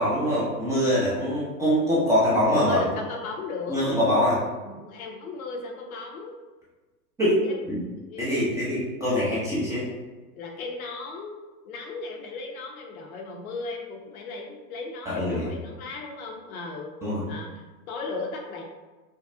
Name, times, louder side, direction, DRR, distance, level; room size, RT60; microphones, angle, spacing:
voice 1, 0.0-2.8 3.7-4.4 7.2-7.8 8.2-9.9 15.1-15.5 17.0-17.2, equal, 5° right, -10 dB, 0.7 m, -24 dB
voice 2, 2.5-3.8 4.6-6.3 7.4-7.5 7.9-8.5 10.3-16.9 17.3-18.6, left 3 dB, 60° left, 1 dB, 0.9 m, -36 dB
5.2 x 2.0 x 2.6 m, 1.2 s
hypercardioid pair, 120°, 49 cm